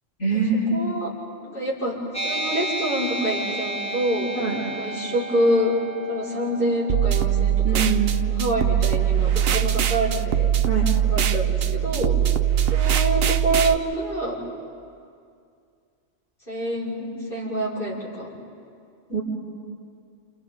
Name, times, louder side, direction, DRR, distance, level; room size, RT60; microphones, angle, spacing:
voice 1, 0.2-0.8 4.3-4.6 7.6-8.2 10.6-10.8 19.1-19.2, right 4 dB, 70° left, -9 dB, 4.9 m, -24 dB
voice 2, 0.7-1.1 1.4-1.9 2.2-4.3 4.8-5.7 6.1-7.9 8.4-10.5 11.1-12.1 12.7-14.3 16.5-18.3, right 1 dB, 45° left, -8 dB, 5.8 m, -26 dB
sound 1, 2.1-9.2, right 2 dB, 5° left, 0.9 m, -33 dB
sound 2, 6.9-13.7, right 10 dB, 60° right, 0.8 m, -21 dB
30.0 x 29.0 x 3.9 m, 2.3 s
omnidirectional pair, 1.3 m